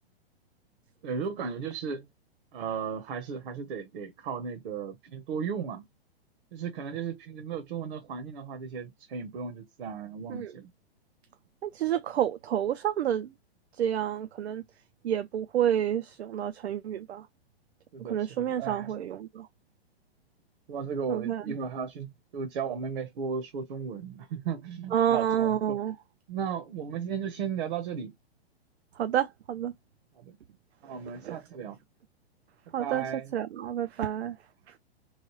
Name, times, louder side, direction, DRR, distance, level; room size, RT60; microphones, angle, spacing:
voice 1, 1.0-2.1 2.5-5.8 6.5-10.7 17.9-18.9 20.7-25.8 26.3-28.2 30.2-30.4 30.8-31.8 32.8-33.3, right 6 dB, 60° right, 0.8 m, -35 dB
voice 2, 11.6-13.3 13.8-14.6 15.0-17.3 18.0-19.5 21.1-21.4 24.9-25.9 29.0-29.7 31.2-31.4 32.7-33.0 33.3-34.4, right 10 dB, 85° right, 0.5 m, -29 dB
3.1 x 2.3 x 3.0 m
hypercardioid pair, 120°, 32 cm